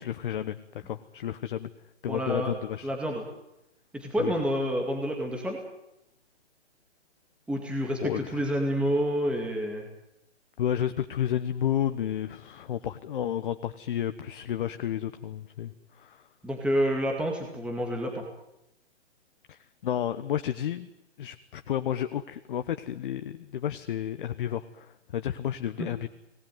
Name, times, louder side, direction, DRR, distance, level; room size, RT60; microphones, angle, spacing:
voice 1, 0.0-1.7 2.0-2.9 4.2-4.3 8.0-8.5 10.6-16.2 19.5-20.9 21.2-26.1, left 10 dB, 45° left, 10 dB, 1.1 m, -31 dB
voice 2, 2.1-2.5 2.8-3.2 3.9-5.6 7.5-9.9 16.4-18.2 25.8-25.9, equal, 5° right, 1 dB, 2.2 m, -28 dB
26.0 x 19.0 x 9.3 m, 0.89 s
hypercardioid pair, 140°, 36 cm